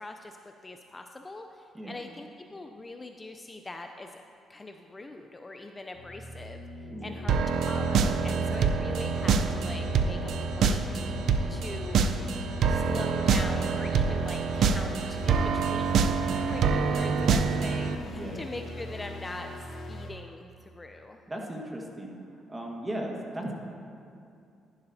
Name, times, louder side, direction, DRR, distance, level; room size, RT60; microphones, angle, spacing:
voice 1, 0.0-4.2 4.5-6.6 7.0-11.2 11.5-12.1 12.7-16.1 16.4-21.2, left 2 dB, 20° left, 5 dB, 0.4 m, -42 dB
sound 1, 6.0-20.1, left 1 dB, 65° left, 0.9 m, -41 dB
sound 2, 7.3-18.0, right 5 dB, 70° right, 0.4 m, -26 dB
voice 2, 18.1-18.4 21.3-22.2 22.5-23.5, right 1 dB, 20° right, 0 dB, 1.4 m, -37 dB
11.0 x 10.5 x 2.7 m, 2.5 s
cardioid pair, 90°, 0 cm